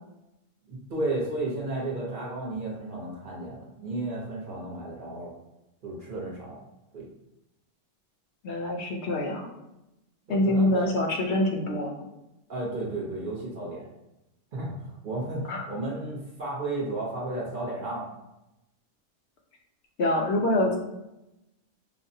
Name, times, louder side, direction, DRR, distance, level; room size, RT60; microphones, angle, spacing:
voice 1, 0.7-5.3 5.8-6.6 6.9-7.1 10.3-10.9 12.5-13.9 14.5-18.1, right 2 dB, 45° right, -4 dB, 0.8 m, -33 dB
voice 2, 8.4-9.5 10.3-11.9 15.5-15.7 20.0-20.8, left 1 dB, 65° left, 0 dB, 0.8 m, -25 dB
5.0 x 2.0 x 2.7 m, 0.92 s
omnidirectional pair, 1.3 m